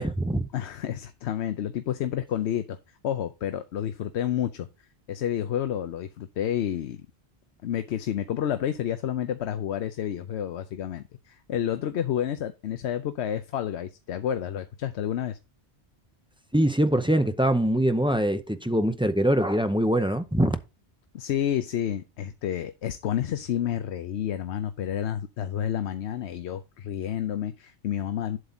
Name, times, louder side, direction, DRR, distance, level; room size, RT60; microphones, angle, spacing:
voice 1, 0.0-0.4 16.5-20.6, right 1 dB, 5° right, 0.5 m, -23 dB
voice 2, 0.5-2.8 3.0-4.7 5.1-7.0 7.6-15.4 21.1-28.4, left 10 dB, 75° left, 0.9 m, -30 dB
8.0 x 7.0 x 3.9 m
omnidirectional pair, 1.1 m